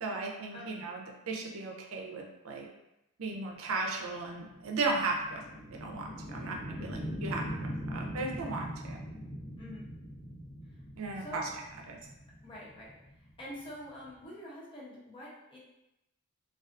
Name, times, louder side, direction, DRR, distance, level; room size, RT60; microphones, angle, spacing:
voice 1, 0.0-2.7 3.2-5.4 5.7-9.0 11.0-11.5 11.9-12.0, right 3 dB, 75° right, 1 dB, 0.4 m, -36 dB
voice 2, 0.5-0.9 9.6-9.9 11.2-11.5 12.4-13.0 13.4-15.6, left 1 dB, 25° left, -6 dB, 0.6 m, -46 dB
sound 1, 3.5-14.2, equal, 75° left, 0.9 m, -42 dB
2.3 x 2.3 x 2.4 m, 0.90 s
head